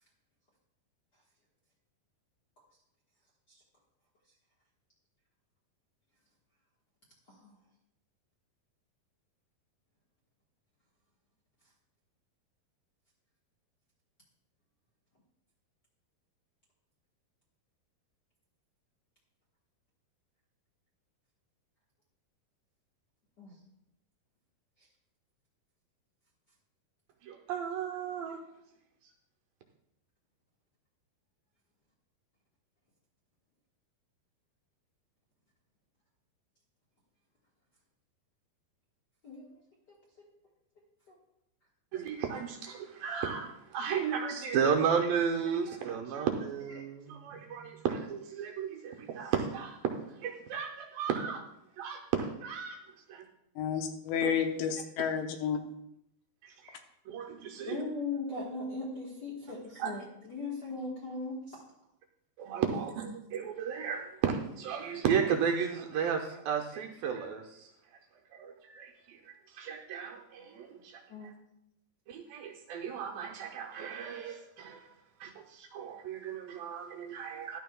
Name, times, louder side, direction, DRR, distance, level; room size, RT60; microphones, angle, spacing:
voice 1, 27.2-28.4 41.9-49.8 50.2-51.4 51.8-52.8 53.1-53.2 54.2-54.3 56.4-56.8 57.1-57.8 59.8-59.9 62.4-67.7 68.3-71.0 72.1-74.9 75.2-77.6, right 7 dB, 75° right, 2 dB, 2.3 m, -34 dB
voice 2, 39.2-39.6 41.1-41.2 57.6-61.6 62.7-62.8 71.1-71.3, left 3 dB, 55° left, -4 dB, 1.1 m, -38 dB
voice 3, 53.6-55.6, left 7 dB, 90° left, 5 dB, 3.1 m, -31 dB
14.5 x 11.5 x 2.3 m, 0.80 s
omnidirectional pair, 4.6 m